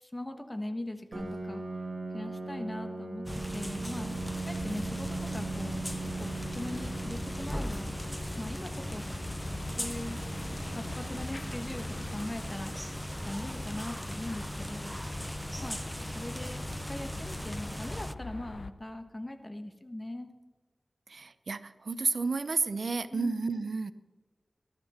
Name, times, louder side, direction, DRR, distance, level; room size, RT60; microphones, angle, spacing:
voice 1, 0.0-1.6 2.1-3.3 3.5-5.9 6.2-7.9 8.4-9.1 9.8-10.2 10.7-15.1 15.6-20.3 23.1-23.5, left 1 dB, 20° left, 6 dB, 1.4 m, -40 dB
Piano, 1.1-16.5, right 3 dB, 45° right, 2.3 m, -41 dB
sound 1, 3.3-18.2, equal, 5° left, 0.4 m, -38 dB
sound 2, 4.2-18.7, left 3 dB, 70° left, 0.7 m, -45 dB
voice 2, 21.1-23.9, right 4 dB, 80° right, 13 dB, 0.6 m, -31 dB
20.5 x 12.0 x 4.4 m, 1.3 s
wide cardioid pair, 85°, 0 cm